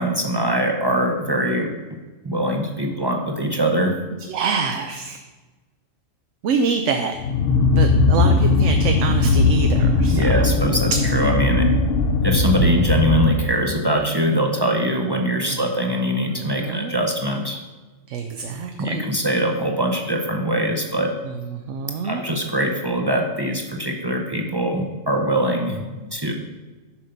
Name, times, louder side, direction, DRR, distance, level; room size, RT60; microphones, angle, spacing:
voice 1, 0.0-1.7 2.2-4.0 10.1-11.7 12.2-17.6 18.8-21.1 22.0-26.3, equal, 25° right, 2 dB, 0.5 m, -22 dB
voice 2, 4.3-5.2 6.4-7.1 7.8-10.2 16.4-16.9 18.1-19.1 21.7-22.2, right 5 dB, 70° right, 5 dB, 0.9 m, -25 dB
sound 1, 7.2-13.7, left 3 dB, 60° left, 0.6 m, -18 dB
7.2 x 5.7 x 5.2 m, 1.2 s
omnidirectional pair, 1.3 m